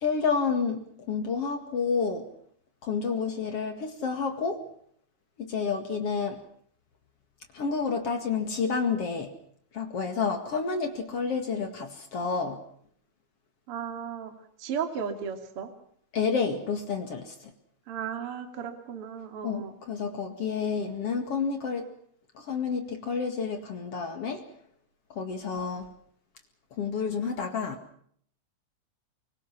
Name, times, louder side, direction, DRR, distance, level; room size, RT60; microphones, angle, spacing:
voice 1, 0.0-2.3 2.8-4.6 5.4-6.4 7.5-9.3 9.7-12.6 16.1-17.3 19.4-21.9 22.4-24.4 25.2-25.9 26.8-27.8, left 5 dB, 55° left, 6 dB, 1.7 m, -29 dB
voice 2, 13.7-14.3 14.6-15.7 17.9-19.8, right 7 dB, 35° right, 6 dB, 2.7 m, -35 dB
24.5 x 24.0 x 5.9 m, 0.64 s
omnidirectional pair, 5.7 m